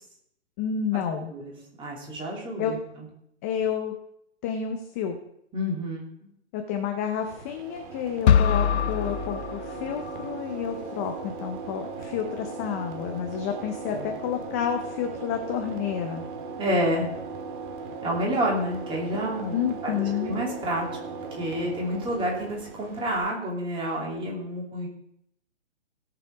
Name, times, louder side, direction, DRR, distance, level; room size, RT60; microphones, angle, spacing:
voice 1, 0.6-1.3 2.6-2.8 3.4-4.0 4.4-5.2 6.5-16.2 19.5-20.4, left 8 dB, 15° left, 5 dB, 0.5 m, -30 dB
voice 2, 1.8-2.8 5.5-6.0 13.9-14.0 16.6-17.1 18.0-19.6 19.8-20.9 21.3-24.9, equal, 15° right, -2 dB, 3.0 m, -29 dB
sound 1, 7.2-23.2, right 4 dB, 45° right, 1.8 m, -38 dB
sound 2, 8.3-10.3, left 8 dB, 65° left, 0.6 m, -23 dB
17.0 x 6.9 x 4.7 m, 0.74 s
hypercardioid pair, 145°, 35 cm